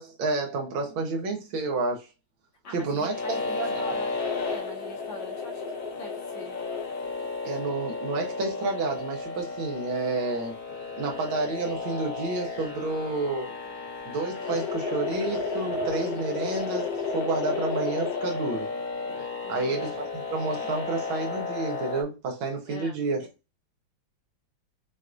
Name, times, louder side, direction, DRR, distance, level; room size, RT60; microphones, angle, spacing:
voice 1, 0.0-2.1 2.7-3.8 7.4-10.6 11.0-13.5 14.1-16.9 17.1-18.7 19.5-23.3, right 3 dB, 85° right, 1.6 m, -30 dB
voice 2, 2.6-4.2 4.4-6.7 19.4-20.0 22.7-23.0, right 1 dB, 75° left, 1.9 m, -43 dB
sound 1, 3.1-22.0, left 3 dB, 55° left, 1.4 m, -33 dB
6.2 x 2.4 x 2.5 m
omnidirectional pair, 2.2 m